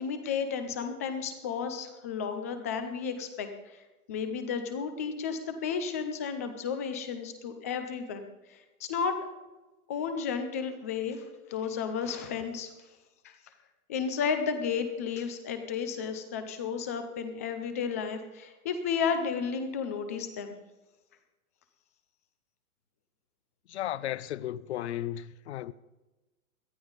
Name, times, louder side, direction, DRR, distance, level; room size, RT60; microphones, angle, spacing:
voice 1, 0.0-3.5 4.1-9.2 9.9-11.2 11.5-12.7 13.2-13.3 13.9-20.5, left 6 dB, 10° left, 0.4 m, -33 dB
voice 2, 23.7-25.7, left 12 dB, 50° left, 0.7 m, -34 dB
18.5 x 12.5 x 4.0 m
hypercardioid pair, 155°, 44 cm